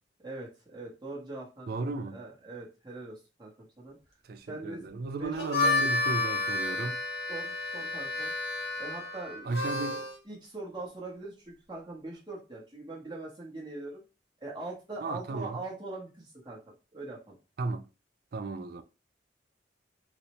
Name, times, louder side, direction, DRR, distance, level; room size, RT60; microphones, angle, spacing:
voice 1, 0.2-4.0 4.5-4.8 5.2-5.6 7.3-8.3 8.8-14.0 14.4-17.4, right 2 dB, 25° right, 0.8 m, -42 dB
voice 2, 1.7-2.2 4.3-7.0 9.5-10.0 15.0-15.6 17.6-17.8 18.3-18.8, right 3 dB, 50° right, 0.4 m, -34 dB
Harmonica, 5.2-10.2, left 3 dB, 60° left, 1.1 m, -31 dB
3.9 x 2.1 x 2.9 m
head